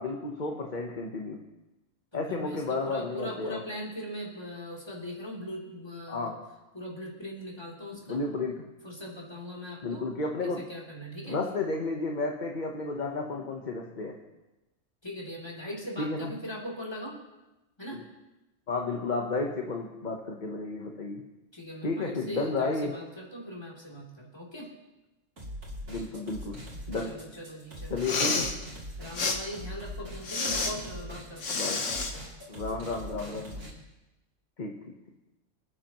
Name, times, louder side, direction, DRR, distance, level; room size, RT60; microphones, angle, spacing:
voice 1, 0.0-1.4 2.1-3.6 6.1-6.4 8.1-8.6 9.8-10.7 11.2-14.2 16.0-16.3 17.9-18.0 18.7-21.2 21.8-23.0 25.9-27.2 27.9-28.5 31.5-31.9 32.5-33.7 34.6-34.9, left 3 dB, 40° left, 1 dB, 1.2 m, -32 dB
voice 2, 2.1-6.3 6.7-8.2 8.8-10.1 10.4-11.4 15.0-17.2 17.8-18.0 21.5-24.7 27.0-28.5 29.0-31.6, equal, 20° left, -2 dB, 3.3 m, -40 dB
sound 1, 25.4-33.7, equal, 80° right, 3.7 m, -42 dB
Respiratory sounds, 27.9-28.5 29.1-29.4 30.2-30.7 31.4-32.1, left 4 dB, 70° left, 1.6 m, -29 dB
27.0 x 9.9 x 3.0 m, 1.0 s
omnidirectional pair, 1.3 m